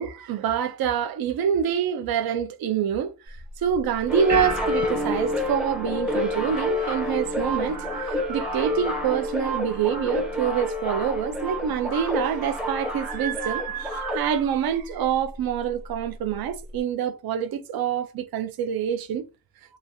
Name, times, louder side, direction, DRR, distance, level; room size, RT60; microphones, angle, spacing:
voice 1, 0.0-19.2, right 8 dB, 70° right, 0.5 m, -26 dB
sound 1, 3.3-16.8, right 2 dB, 45° right, 1.2 m, -38 dB
sound 2, 4.1-14.2, left 1 dB, ahead, 0.5 m, -29 dB
3.0 x 2.3 x 2.5 m
wide cardioid pair, 135°, 38 cm